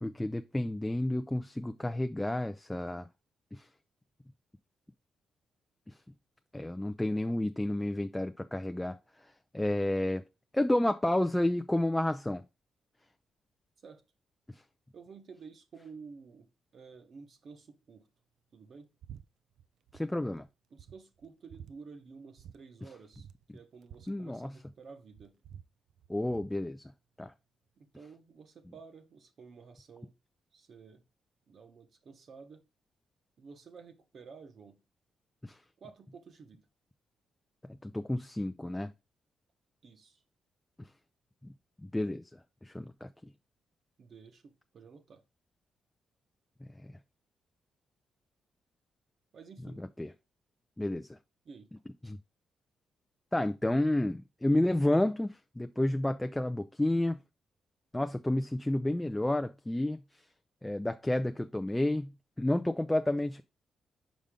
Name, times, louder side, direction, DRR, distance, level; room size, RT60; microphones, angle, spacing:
voice 1, 0.0-3.1 3.5-3.7 6.5-9.0 9.5-10.2 10.5-12.4 19.9-20.5 24.1-24.5 26.1-26.8 27.2-27.3 35.4-35.6 37.8-38.9 41.9-42.2 42.6-43.1 50.0-50.1 50.8-51.2 52.0-52.2 53.3-57.2 57.9-60.0 60.6-62.1 62.4-63.4, left 1 dB, 10° left, 0.4 m, -30 dB
voice 2, 14.9-18.1 18.5-18.9 20.7-23.3 23.5-25.4 27.8-30.2 30.5-31.1 31.5-32.6 33.4-34.8 35.8-36.7 39.8-40.2 44.0-45.2 49.3-49.8 51.4-51.7, right 5 dB, 50° right, 1.0 m, -52 dB
sound 1, 19.0-19.2 19.5-20.1 20.4-20.5 20.8-21.7 22.4-22.6 22.8-22.9 23.1-24.8 25.1-26.6, right 9 dB, 75° right, 0.4 m, -51 dB
5.4 x 5.2 x 3.7 m
cardioid pair, 110°, 0 cm